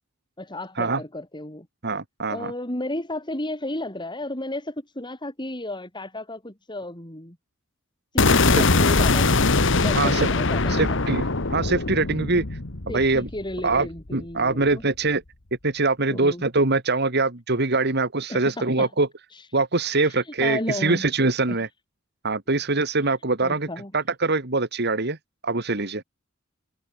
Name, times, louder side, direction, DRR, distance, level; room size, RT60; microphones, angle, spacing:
voice 1, 0.4-1.7 2.3-7.4 8.1-9.4 9.7-11.1 12.9-14.8 16.1-16.4 18.3-18.9 19.3-19.5 20.0-21.0 21.5-21.6 23.4-23.9, left 1 dB, 25° left, 6.7 m, -33 dB
voice 2, 1.8-2.5 8.6-8.7 9.9-10.3 10.7-12.4 12.9-13.3 13.6-15.2 15.6-19.1 19.5-21.7 22.2-23.7 23.9-25.2 25.4-26.0, right 3 dB, 55° right, 2.5 m, -23 dB
sound 1, 8.2-14.2, left 3 dB, 65° left, 1.7 m, -22 dB
head